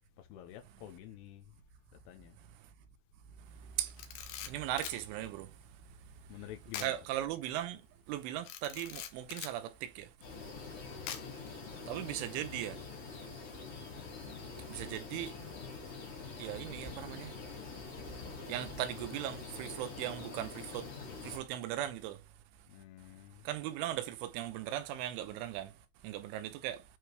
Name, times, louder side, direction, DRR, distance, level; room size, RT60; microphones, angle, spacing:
voice 1, 0.2-1.5 2.1-2.4 6.3-7.0 22.7-23.5, left 13 dB, 85° left, 3.7 m, -49 dB
Camera, 3.9-5.0 6.7-7.0 7.3-7.4 8.4-9.6 11.1-11.5, left 10 dB, 70° left, 3.0 m, -43 dB
voice 2, 4.4-5.5 6.8-7.8 8.1-10.1 11.9-12.8 14.7-15.3 16.4-17.4 18.5-20.9 21.2-22.2 23.5-25.7 26.0-26.8, right 12 dB, 90° right, 3.2 m, -38 dB
sound 1, 10.2-21.4, left 4 dB, 35° left, 2.9 m, -45 dB
9.0 x 4.8 x 3.1 m
omnidirectional pair, 5.6 m